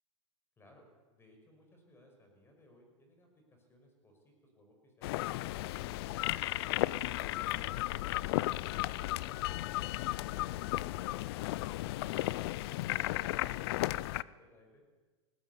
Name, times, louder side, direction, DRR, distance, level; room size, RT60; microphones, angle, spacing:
voice 1, 0.6-5.8 11.8-14.8, left 1 dB, 15° left, 3 dB, 6.1 m, -63 dB
sound 1, 5.0-14.2, left 17 dB, 50° left, 0.6 m, -34 dB
20.0 x 19.5 x 8.4 m, 1.3 s
hypercardioid pair, 135°, 17 cm